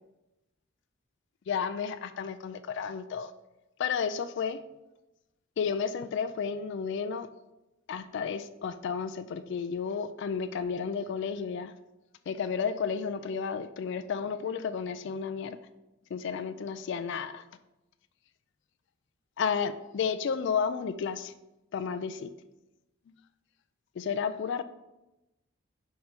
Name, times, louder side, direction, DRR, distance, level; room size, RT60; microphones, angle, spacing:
voice 1, 1.5-3.3 3.8-4.6 5.6-7.3 7.9-11.7 12.3-15.6 16.1-17.4 19.4-21.3 21.7-22.3 23.1-23.2 24.0-24.6, left 6 dB, 55° left, 10 dB, 0.3 m, -32 dB
5.4 x 4.5 x 5.1 m, 0.98 s
head